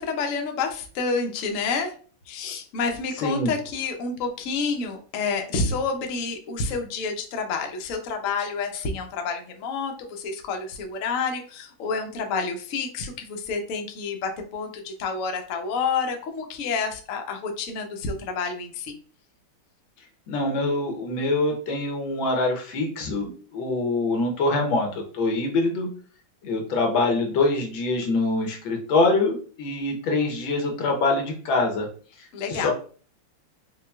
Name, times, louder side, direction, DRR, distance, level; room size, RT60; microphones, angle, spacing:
voice 1, 0.0-1.9 2.3-19.0 32.3-32.7, left 4 dB, 65° left, 4 dB, 0.8 m, -29 dB
voice 2, 3.2-3.5 20.3-25.9 26.4-31.9 32.5-32.7, left 2 dB, 85° left, 2 dB, 1.7 m, -24 dB
5.5 x 2.3 x 2.3 m, 0.41 s
omnidirectional pair, 2.1 m